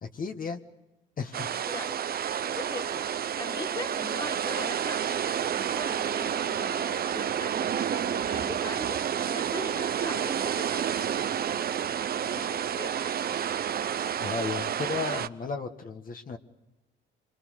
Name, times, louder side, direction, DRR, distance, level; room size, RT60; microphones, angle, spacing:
voice 1, 0.0-0.6 1.2-1.5 14.2-16.4, left 5 dB, 45° left, 5 dB, 1.7 m, -34 dB
sound 1, 1.3-15.3, right 9 dB, 50° right, 0.8 m, -30 dB
voice 2, 2.3-11.1 12.2-13.3, left 2 dB, 20° left, 7 dB, 1.7 m, -41 dB
26.5 x 23.5 x 6.6 m, 1.0 s
cardioid pair, 90°, 20 cm